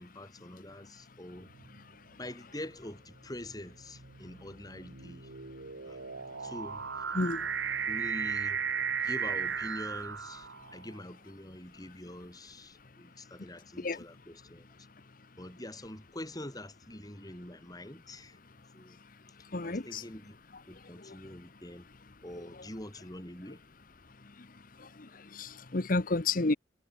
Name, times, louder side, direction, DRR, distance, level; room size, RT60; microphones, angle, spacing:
voice 1, 0.0-1.5 2.2-5.3 5.8-6.0 6.4-7.1 7.9-8.6 9.0-14.9 15.4-18.4 18.7-19.0 19.6-20.3 20.7-21.9 22.2-23.6, left 1 dB, 20° left, 5.1 m, -45 dB
sound 1, 1.5-1.9 2.7-10.9, right 7 dB, 75° right, 1.7 m, -36 dB
voice 2, 19.5-20.0 25.4-26.5, left 3 dB, 45° left, 1.0 m, -30 dB
head